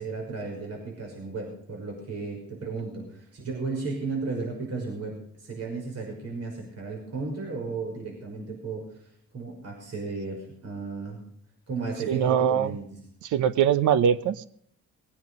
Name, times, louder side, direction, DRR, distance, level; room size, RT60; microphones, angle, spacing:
voice 1, 0.0-8.9 9.3-11.2 11.7-12.9, right 4 dB, 55° right, 1 dB, 5.8 m, -34 dB
voice 2, 12.1-12.8 13.2-14.5, right 8 dB, 80° right, 15 dB, 1.0 m, -22 dB
21.0 x 9.5 x 5.4 m, 0.66 s
cardioid pair, 90°, 30 cm